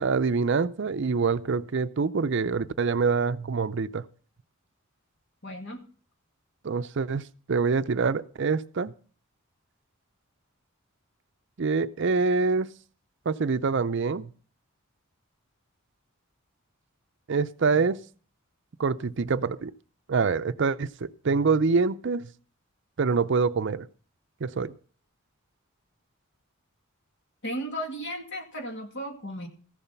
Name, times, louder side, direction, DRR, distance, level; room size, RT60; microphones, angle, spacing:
voice 1, 0.0-4.0 6.6-8.9 11.6-12.7 13.3-14.3 17.3-18.0 18.8-19.7 20.1-22.3 23.0-23.9 24.4-24.7, right 4 dB, 55° right, 13 dB, 0.5 m, -25 dB
voice 2, 5.4-5.8 27.4-29.5, equal, 55° left, 4 dB, 2.1 m, -35 dB
14.5 x 7.1 x 5.8 m, 0.42 s
head